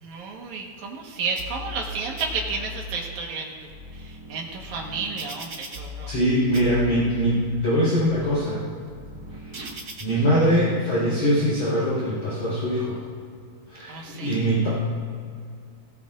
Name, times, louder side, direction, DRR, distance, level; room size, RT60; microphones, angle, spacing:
voice 1, 0.0-3.5 3.9-6.1 13.9-14.4, right 4 dB, 60° right, 0 dB, 2.3 m, -32 dB
sound 1, 1.4-1.9 2.2-2.9 3.5-6.3 6.5-7.3 7.8-10.0, left 2 dB, 85° right, 0.7 m, -39 dB
voice 2, 6.1-8.6 9.4-9.5 10.0-13.0 13.7-14.7, equal, 45° left, -10 dB, 5.1 m, -22 dB
18.0 x 17.0 x 2.5 m, 2.4 s
omnidirectional pair, 4.5 m